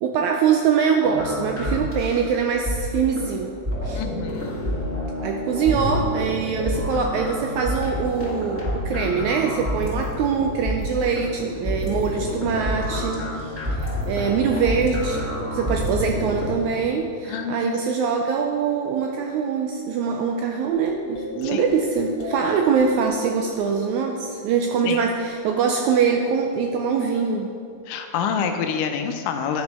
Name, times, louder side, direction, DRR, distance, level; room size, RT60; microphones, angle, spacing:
voice 1, 0.0-3.6 3.8-4.0 5.2-13.6 14.1-15.2 15.5-27.5, right 6 dB, 80° right, 3 dB, 1.7 m, -23 dB
sound 1, 1.0-16.5, left 1 dB, 5° right, 1.6 m, -28 dB
voice 2, 4.0-4.6 17.3-17.7 21.4-21.6 24.8-25.0 27.9-29.6, left 7 dB, 85° left, 6 dB, 2.2 m, -27 dB
sound 2, 20.7-25.1, left 5 dB, 60° left, 2.4 m, -36 dB
12.0 x 6.1 x 4.3 m, 2.3 s
omnidirectional pair, 3.8 m